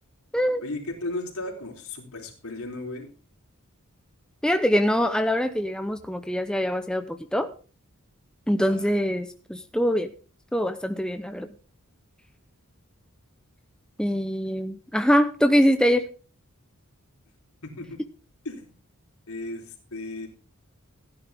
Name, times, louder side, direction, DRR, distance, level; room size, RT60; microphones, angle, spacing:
voice 1, 0.6-3.1 8.6-9.0 17.6-18.0 18.4-18.7 19.3-20.3, left 2 dB, 75° left, 1 dB, 3.9 m, -35 dB
voice 2, 4.4-7.5 8.5-10.1 10.5-11.5 14.0-16.1, equal, 5° left, 8 dB, 0.6 m, -23 dB
16.0 x 10.5 x 3.5 m, 0.36 s
head